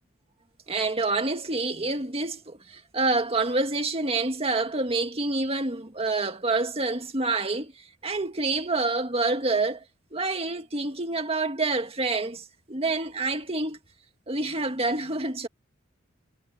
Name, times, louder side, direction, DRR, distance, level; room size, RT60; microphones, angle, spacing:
voice 1, 0.7-7.7 8.0-9.8 10.1-13.8 14.3-15.5, right 3 dB, 30° right, 2.1 m, -27 dB
head